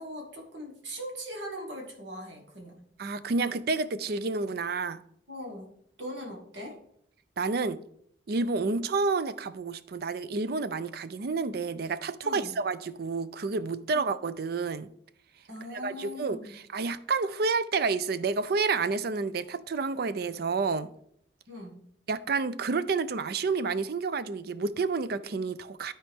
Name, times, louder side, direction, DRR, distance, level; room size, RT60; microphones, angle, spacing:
voice 1, 0.0-2.8 5.3-5.7 6.0-6.8 12.2-12.5 13.9-14.0 15.5-16.6 21.5-21.8, equal, 75° right, 2.1 m, -40 dB
voice 2, 3.0-5.0 7.4-7.8 8.3-14.9 15.7-20.9 22.1-25.9, right 4 dB, 55° right, 0.4 m, -29 dB
12.5 x 4.4 x 3.5 m
head